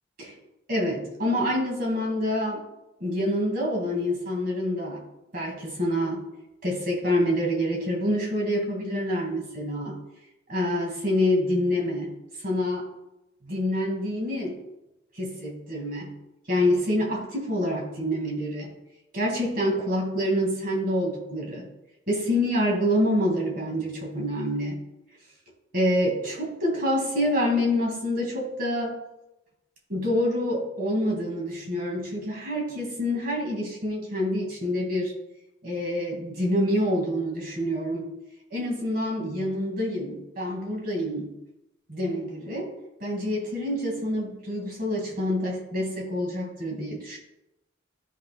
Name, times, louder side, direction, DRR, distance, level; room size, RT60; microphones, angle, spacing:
voice 1, 0.7-2.6 3.0-5.0 5.3-6.3 6.6-10.0 10.5-12.1 12.4-12.9 13.4-14.6 15.2-16.1 16.5-18.7 19.1-21.7 22.1-24.8 25.7-29.0 29.9-35.1 35.6-38.1 38.5-41.3 41.9-42.7 43.0-47.2, left 1 dB, 50° right, 0 dB, 2.1 m, -27 dB
12.0 x 5.4 x 2.3 m, 0.92 s
head